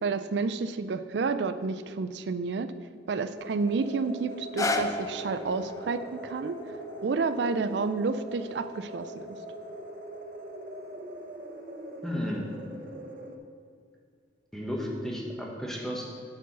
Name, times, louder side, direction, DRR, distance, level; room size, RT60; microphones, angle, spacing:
voice 1, 0.0-2.7 3.1-6.6 7.0-9.4, right 4 dB, 70° right, 11 dB, 0.4 m, -30 dB
sound 1, 3.3-13.4, right 1 dB, 50° right, 0.8 m, -42 dB
sound 2, 4.3-10.4 11.1-11.2, left 2 dB, 20° left, 0.4 m, -37 dB
voice 2, 12.0-12.5 14.5-16.0, equal, 5° left, -2 dB, 1.2 m, -33 dB
9.7 x 4.7 x 6.1 m, 2.2 s
head